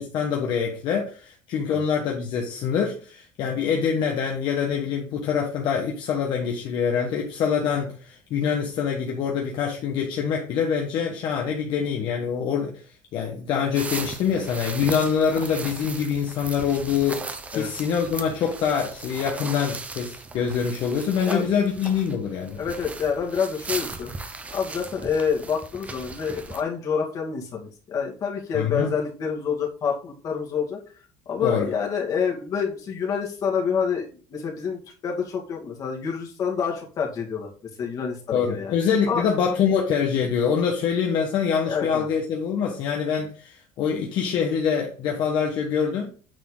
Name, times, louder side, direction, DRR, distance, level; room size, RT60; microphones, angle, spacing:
voice 1, 0.0-12.8 13.1-17.2 17.5-22.6 28.5-28.9 31.4-31.7 38.3-46.1, left 7 dB, 55° left, 0 dB, 1.3 m, -25 dB
sound 1, 13.7-26.6, right 3 dB, 15° right, 0.8 m, -37 dB
voice 2, 22.6-30.8 31.3-37.5 37.8-38.7 39.1-39.3 41.7-42.1, left 6 dB, 40° left, 0 dB, 2.2 m, -27 dB
9.1 x 4.3 x 3.9 m, 0.41 s
cardioid pair, 155°, 9 cm